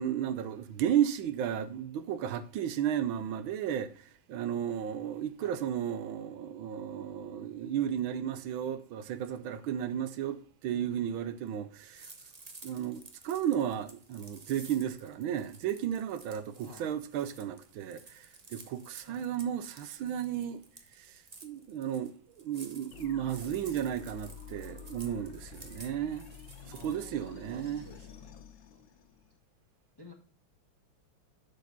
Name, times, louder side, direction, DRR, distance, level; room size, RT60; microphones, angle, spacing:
voice 1, 0.0-10.4 10.6-12.1 12.6-20.6 21.0-26.3 26.8-27.8, right 10 dB, 90° right, 1.6 m, -34 dB
sound 1, 11.9-28.2, right 3 dB, 35° right, 0.7 m, -53 dB
voice 2, 16.6-16.9 19.1-19.3 26.7-28.3 28.7-28.8 30.0-30.1, left 2 dB, 15° left, 1.0 m, -53 dB
sound 2, 22.9-29.4, left 7 dB, 65° left, 1.5 m, -49 dB
7.4 x 6.6 x 3.9 m
omnidirectional pair, 2.2 m